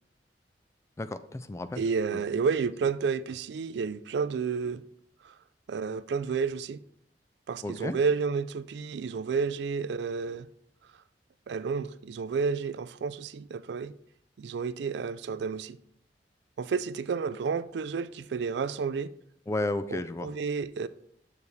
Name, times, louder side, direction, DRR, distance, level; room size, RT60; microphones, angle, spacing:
voice 1, 1.0-1.8 7.6-8.0 19.5-20.3, left 2 dB, 15° left, 0.3 m, -32 dB
voice 2, 1.8-4.8 5.2-5.3 5.7-6.8 7.5-10.5 11.5-13.9 14.4-15.8 16.6-19.1 19.9-20.9, right 5 dB, 65° right, 0.3 m, -31 dB
7.0 x 6.8 x 3.1 m
head